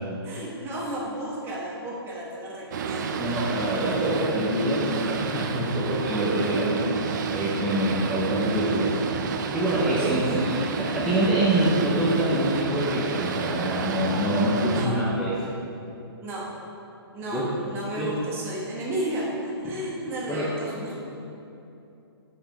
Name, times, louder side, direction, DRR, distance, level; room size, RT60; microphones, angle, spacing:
voice 1, 0.2-3.2 10.0-10.3 10.6-10.8 14.7-15.0 16.2-16.5 17.1-21.0, right 1 dB, 15° right, -5 dB, 1.3 m, -33 dB
Boat Water vehicle, 2.7-14.9, right 5 dB, 45° right, 0.5 m, -30 dB
voice 2, 3.2-8.9 9.5-15.5 17.3-17.5 18.0-18.1 19.6-19.7 20.3-20.5, right 1 dB, ahead, -12 dB, 0.9 m, -25 dB
8.5 x 5.1 x 3.5 m, 2.8 s
hypercardioid pair, 145°, 13 cm